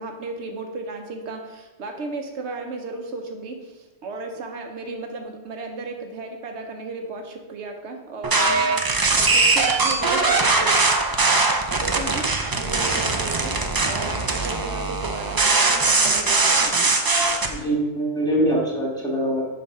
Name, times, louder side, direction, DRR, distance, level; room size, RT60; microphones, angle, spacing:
voice 1, 0.0-11.4 11.8-17.0, right 3 dB, 85° right, 3 dB, 1.2 m, -35 dB
sound 1, 8.2-17.5, right 3 dB, 30° right, 0.4 m, -21 dB
voice 2, 17.5-19.5, right 1 dB, 5° left, -4 dB, 1.6 m, -23 dB
6.9 x 3.9 x 5.4 m, 1.1 s
omnidirectional pair, 1.1 m